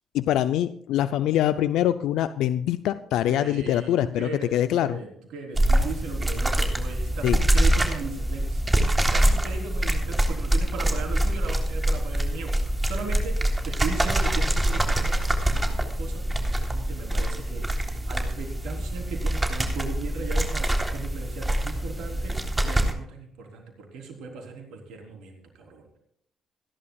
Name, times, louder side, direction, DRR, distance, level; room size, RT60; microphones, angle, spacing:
voice 1, 0.1-5.0 7.2-7.4, left 12 dB, 75° left, 12 dB, 0.5 m, -24 dB
voice 2, 3.3-26.0, right 4 dB, 75° right, 2 dB, 3.7 m, -38 dB
sound 1, 5.5-22.9, right 1 dB, 20° right, 3.4 m, -25 dB
28.0 x 11.0 x 2.4 m, 0.67 s
hypercardioid pair, 50°, 0 cm